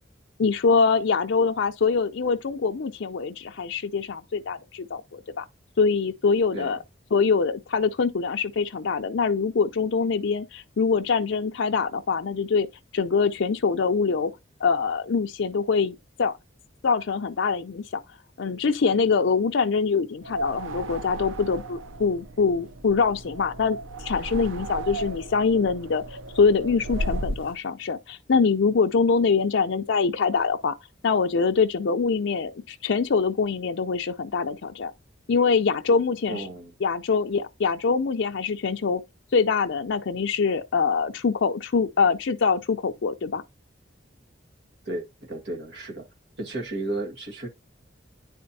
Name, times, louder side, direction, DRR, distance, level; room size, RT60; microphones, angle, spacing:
voice 1, 0.4-5.4 5.8-6.8 7.1-12.7 12.9-14.3 14.6-16.3 16.8-18.0 18.4-26.0 26.3-30.8 31.0-34.9 35.3-36.4 36.8-39.0 39.3-43.4, left 5 dB, 70° left, 0.5 m, -24 dB
sound 1, 20.2-27.5, right 1 dB, 90° right, 0.6 m, -35 dB
voice 2, 36.3-36.7 44.8-46.1 46.4-47.5, right 2 dB, 60° right, 1.6 m, -33 dB
9.4 x 4.3 x 2.7 m
head